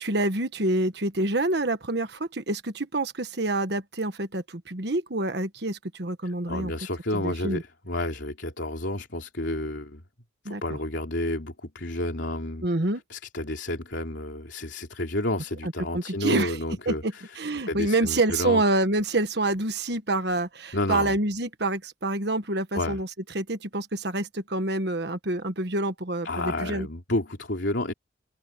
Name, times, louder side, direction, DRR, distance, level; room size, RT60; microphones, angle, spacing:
voice 1, 0.0-6.7 7.1-7.6 10.4-10.6 12.6-13.0 15.9-16.6 16.9-23.1 23.3-26.9, right 2 dB, 60° right, 1.4 m, -27 dB
voice 2, 6.2-10.0 10.4-12.7 13.1-17.4 17.6-18.6 20.7-21.2 22.7-23.0 26.2-27.9, left 1 dB, 75° left, 3.1 m, -30 dB
head